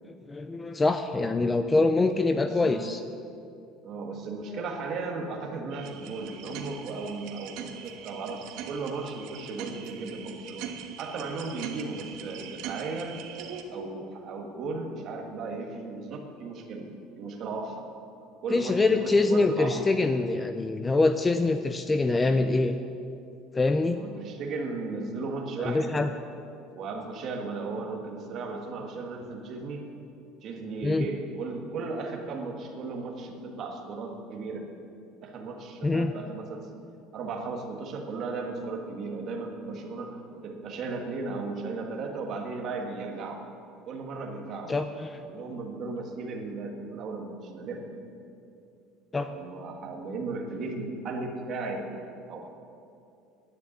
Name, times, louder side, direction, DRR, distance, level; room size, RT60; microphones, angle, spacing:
voice 1, 0.3-3.0 18.5-22.8 23.5-24.0 25.6-26.1 30.8-31.0 35.8-36.1 44.7-45.2 49.1-49.3, left 3 dB, 10° left, 9 dB, 0.3 m, -24 dB
voice 2, 2.4-2.8 3.8-10.7 11.0-13.2 13.7-16.9 17.2-17.8 18.4-19.9 23.9-26.0 26.7-29.9 30.4-34.7 35.2-36.7 37.1-43.4 43.8-44.7 45.1-47.9 49.3-51.8 52.3-52.5, right 3 dB, 35° right, 2 dB, 1.5 m, -36 dB
sound 1, 5.7-13.6, right 8 dB, 55° right, 1.1 m, -42 dB
10.5 x 9.6 x 8.5 m, 2.6 s
cardioid pair, 175°, 0 cm